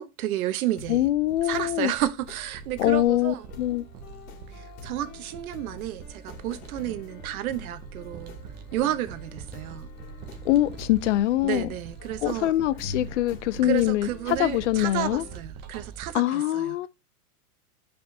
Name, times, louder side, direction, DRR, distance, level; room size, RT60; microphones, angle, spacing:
voice 1, 0.0-1.0 1.5-3.4 4.5-8.4 8.7-9.9 11.4-12.5 13.6-16.9, right 13 dB, 65° right, 0.9 m, -31 dB
sound 1, 0.8-1.1 1.5-1.8 2.3-2.4 2.8-15.4, left 5 dB, 70° left, 2.5 m, -45 dB
sound 2, 0.8-16.1, right 5 dB, 20° right, 0.7 m, -44 dB
voice 2, 0.9-1.9 2.8-3.8 10.4-11.7 12.2-15.2 16.1-16.9, left 14 dB, 55° left, 0.5 m, -24 dB
6.9 x 5.1 x 2.7 m
supercardioid pair, 155°, 45 cm